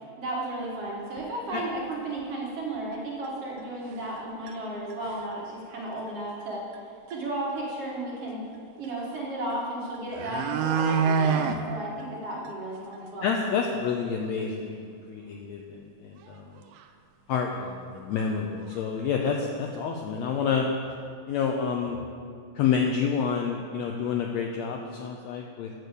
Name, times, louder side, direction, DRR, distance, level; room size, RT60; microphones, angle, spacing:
voice 1, 0.2-6.6 7.1-8.4 8.8-13.3, right 1 dB, 55° right, -4 dB, 2.2 m, -34 dB
sound 1, 1.2-1.3 1.8-1.9 2.2-2.3 3.2-3.3 3.9-4.2 4.5-4.6 4.9-5.3 6.7-6.8 7.1-7.2 9.5-9.6 9.9-11.6 12.0-12.1 12.4-12.5 12.9-13.0 13.4-13.5 16.3-16.4 16.7-16.8 17.6-17.7 18.1-18.4 18.6-19.4 19.7-19.8, right 6 dB, 85° right, 2.2 m, -27 dB
voice 2, 13.2-15.6 16.0-16.5 17.3-20.7 21.3-22.0 22.6-25.7, left 6 dB, 80° left, 1 dB, 1.6 m, -28 dB
8.2 x 6.6 x 6.7 m, 2.3 s
omnidirectional pair, 3.7 m